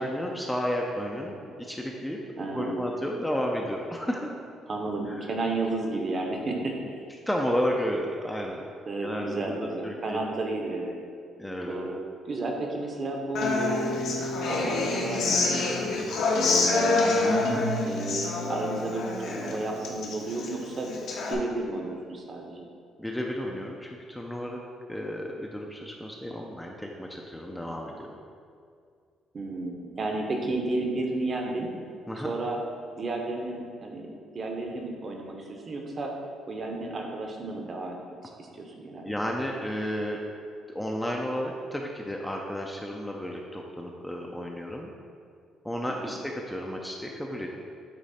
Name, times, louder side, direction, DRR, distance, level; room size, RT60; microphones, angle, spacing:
voice 1, 0.0-2.2 2.5-4.3 5.1-5.2 7.3-8.6 9.0-10.3 11.4-11.9 17.4-17.7 23.0-24.6 24.9-28.2 32.1-32.3 39.0-40.2 40.7-44.9 45.6-47.5, equal, 5° left, 0 dB, 0.4 m, -32 dB
voice 2, 2.4-2.8 4.7-6.8 8.9-11.0 11.7-12.0 12.3-15.6 15.9-16.1 16.4-17.2 17.8-20.9 21.3-22.7 29.3-31.7 32.2-32.6 33.0-36.1 36.5-38.0 38.4-39.2 46.1-46.2, right 2 dB, 30° right, 1 dB, 0.8 m, -32 dB
Human voice / Acoustic guitar, 13.3-21.3, left 3 dB, 65° left, 0.9 m, -27 dB
8.3 x 3.0 x 4.2 m, 2.3 s
cardioid pair, 145°, 0 cm